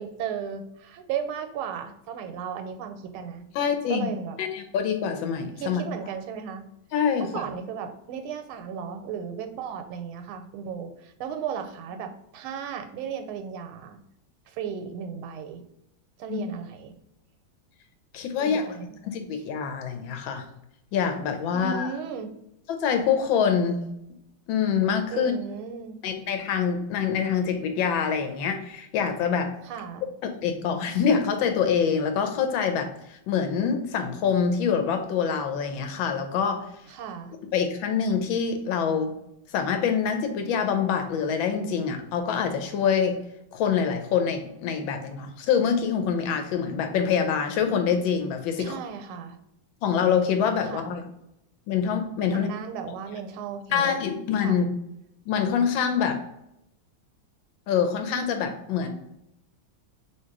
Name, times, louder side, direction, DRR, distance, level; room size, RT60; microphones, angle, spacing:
voice 1, 0.0-3.4 3.9-4.4 5.6-6.6 7.2-14.0 14.5-15.6 16.2-16.9 18.4-19.0 21.5-22.3 25.1-26.0 29.7-30.1 36.9-37.3 48.6-49.4 50.6-51.0 52.3-54.0 54.4-54.6, right 7 dB, 90° right, 7 dB, 1.4 m, -35 dB
voice 2, 3.5-4.1 4.4-5.8 6.9-7.5 16.3-16.4 18.1-18.7 19.0-20.4 20.9-21.9 22.7-23.8 24.5-25.3 26.0-29.5 30.2-36.6 37.5-39.1 39.5-43.2 43.5-48.8 49.8-51.0 51.7-52.6 53.7-54.7 55.3-56.2 57.7-58.9, left 7 dB, 80° left, 6 dB, 1.3 m, -25 dB
3.1 x 2.8 x 4.5 m, 0.82 s
omnidirectional pair, 2.2 m